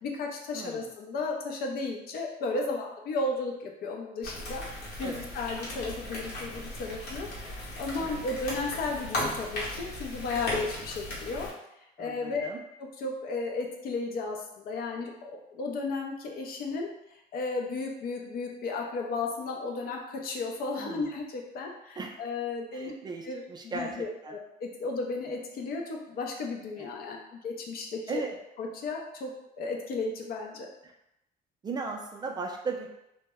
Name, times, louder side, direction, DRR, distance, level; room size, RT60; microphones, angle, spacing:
voice 1, 0.0-4.6 5.0-11.5 12.0-12.5 12.8-16.9 17.3-22.9 23.2-28.2 28.6-29.3 29.6-30.7, left 3 dB, 60° left, 1 dB, 0.5 m, -34 dB
voice 2, 0.5-0.9 5.0-5.3 8.0-8.2 12.0-12.6 20.8-21.1 22.0-22.2 22.7-23.9 24.2-24.3 26.8-26.9 28.1-28.3 30.8-30.9 31.6-32.9, right 4 dB, 25° right, 1 dB, 0.3 m, -37 dB
sound 1, 4.2-11.5, left 1 dB, 85° left, 1.0 m, -37 dB
2.1 x 2.0 x 3.4 m, 0.84 s
cardioid pair, 110°, 17 cm